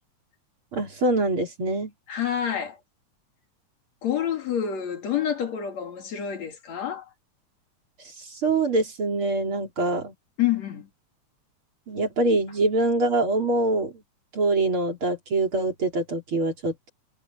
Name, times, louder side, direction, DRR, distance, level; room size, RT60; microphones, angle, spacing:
voice 1, 0.7-1.9 8.2-10.1 11.9-13.9 14.3-16.9, right 2 dB, 45° right, 4.3 m, -24 dB
voice 2, 2.1-2.8 4.0-7.1 10.4-10.9, left 9 dB, 60° left, 3.4 m, -28 dB
omnidirectional pair, 3.5 m